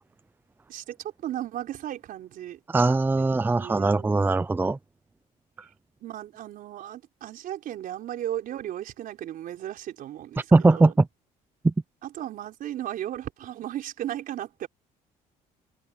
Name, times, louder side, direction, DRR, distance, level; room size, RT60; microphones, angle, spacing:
voice 1, 0.7-2.6 3.1-4.1 6.0-10.9 12.0-14.7, right 12 dB, 65° right, 4.6 m, -36 dB
voice 2, 2.7-4.8 10.5-11.1 11.6-11.7, right 3 dB, 15° right, 0.6 m, -20 dB
cardioid pair, 95°, 16 cm